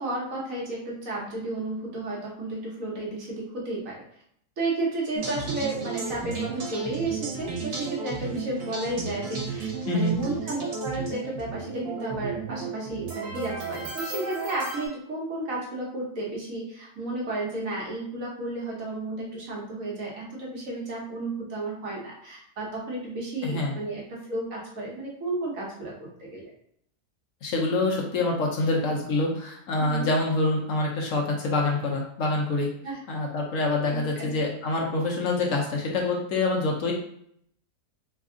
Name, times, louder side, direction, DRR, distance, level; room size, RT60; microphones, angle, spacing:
voice 1, 0.0-4.0 4.6-26.5 29.8-30.1 32.8-33.0 33.8-34.3, right 2 dB, 65° right, -3 dB, 1.4 m, -32 dB
sound 1, 5.2-14.9, right 5 dB, 90° right, 1.4 m, -34 dB
voice 2, 23.4-23.7 27.4-32.7 33.1-36.9, left 2 dB, 65° left, -1 dB, 1.0 m, -26 dB
3.4 x 2.3 x 3.6 m, 0.69 s
omnidirectional pair, 1.6 m